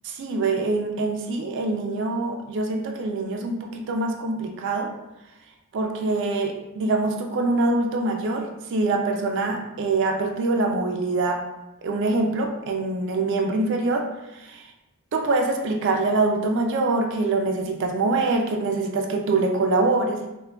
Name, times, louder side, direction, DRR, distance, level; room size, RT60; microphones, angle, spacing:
voice 1, 0.2-4.9 5.7-11.4 11.8-14.1 14.3-14.7 15.1-20.3, right 3 dB, 55° right, 2 dB, 0.3 m, -24 dB
3.5 x 2.2 x 2.2 m, 0.97 s
head